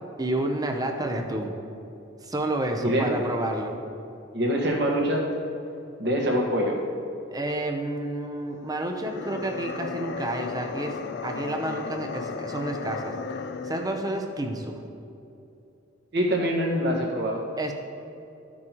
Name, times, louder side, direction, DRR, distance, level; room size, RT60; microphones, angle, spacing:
voice 1, 0.2-1.6 2.3-3.8 7.3-13.2 13.6-14.8 17.6-17.7, right 1 dB, 20° right, 3 dB, 0.7 m, -30 dB
voice 2, 2.8-3.2 4.3-5.3 6.0-6.7 16.1-17.4, equal, 60° right, -1 dB, 1.5 m, -24 dB
sound 1, 8.9-14.2, left 5 dB, 60° left, 0.4 m, -35 dB
13.0 x 6.2 x 3.0 m, 2.8 s
head